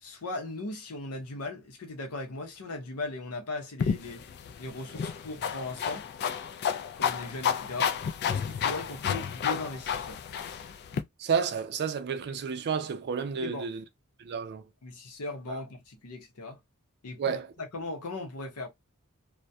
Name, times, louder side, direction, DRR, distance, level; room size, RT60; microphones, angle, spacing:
voice 1, 0.0-4.3 4.6-6.1 7.0-8.0 8.3-10.4 13.4-13.7 14.8-16.6 17.0-17.4 17.7-18.7, left 2 dB, 85° left, 0.7 m, -38 dB
sound 1, 3.8-11.0, left 7 dB, 50° left, 0.3 m, -31 dB
voice 2, 11.2-13.8 14.2-14.7 15.5-15.6 17.2-17.5, right 6 dB, 50° right, 0.4 m, -31 dB
2.2 x 2.1 x 2.5 m
head